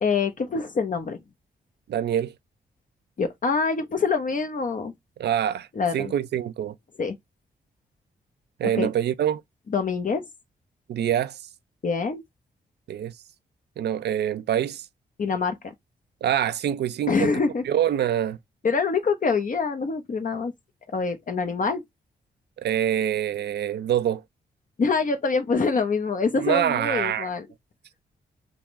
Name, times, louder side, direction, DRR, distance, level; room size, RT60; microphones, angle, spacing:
voice 1, 0.0-1.2 3.2-4.9 5.8-6.1 7.0-7.2 8.6-8.9 9.7-10.2 11.8-12.2 15.2-15.7 17.1-17.6 18.6-20.5 20.9-21.8 24.8-27.5, left 4 dB, 45° left, 0.7 m, -25 dB
voice 2, 1.9-2.3 5.2-5.7 5.9-6.7 8.6-9.4 10.9-11.4 12.9-13.1 13.8-14.9 16.2-17.3 17.7-18.4 22.6-24.2 26.4-27.3, right 10 dB, 65° right, 0.5 m, -25 dB
3.5 x 2.4 x 3.0 m
supercardioid pair, 50°, 19 cm